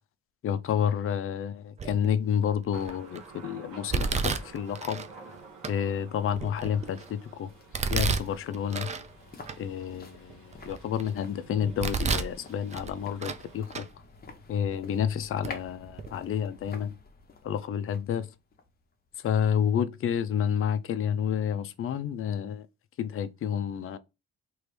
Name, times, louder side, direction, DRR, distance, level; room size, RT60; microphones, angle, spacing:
voice 1, 0.4-5.0 5.7-7.5 7.9-8.9 9.6-13.9 14.5-16.9 17.4-18.3 19.2-22.7 23.0-24.0, left 8 dB, 45° left, 0.4 m, -29 dB
Domestic sounds home sounds, 1.8-2.2 2.7-3.2 3.9-5.1 5.6-5.7 6.3-7.1 7.7-9.1 9.5-9.6 10.1-11.1 11.6-12.4 12.7-13.4 13.7-13.9 14.7-14.8 15.4-15.5 15.9-16.1, right 5 dB, 25° right, 0.3 m, -31 dB
Thunder, 2.7-13.6, right 4 dB, 80° right, 1.2 m, -52 dB
sound 1, 6.3-19.5 19.8-19.9, left 4 dB, 30° left, 0.9 m, -50 dB
3.1 x 3.0 x 3.2 m
cardioid pair, 90°, 30 cm